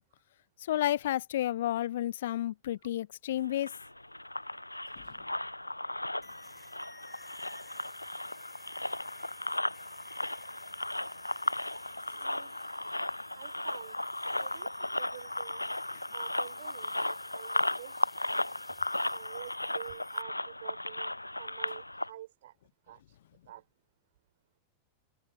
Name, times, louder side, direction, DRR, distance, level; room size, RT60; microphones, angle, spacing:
voice 1, 0.7-3.7, left 13 dB, 60° left, 1.1 m, -31 dB
sound 1, 3.4-22.1, left 1 dB, 85° left, 0.8 m, -35 dB
sound 2, 6.2-20.2, left 3 dB, 10° left, 7.7 m, -58 dB
voice 2, 12.2-12.5 13.3-14.0 14.3-15.6 16.1-18.0 19.1-21.1 21.4-22.5 22.9-23.2 23.5-23.6, right 13 dB, 55° right, 5.1 m, -48 dB
open air
figure-of-eight pair, 90°, 0 cm